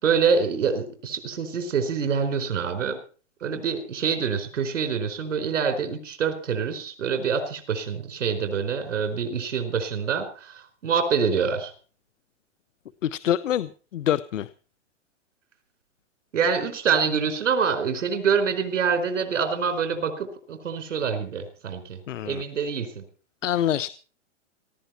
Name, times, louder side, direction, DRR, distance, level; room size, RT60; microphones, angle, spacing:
voice 1, 0.0-3.0 3.4-11.7 16.3-22.0 22.2-23.0, right 6 dB, 80° right, 7 dB, 4.6 m, -26 dB
voice 2, 13.0-14.5 22.1-22.4 23.4-23.9, left 11 dB, 85° left, 17 dB, 0.8 m, -26 dB
19.0 x 15.0 x 4.4 m, 0.39 s
hypercardioid pair, 140°, 36 cm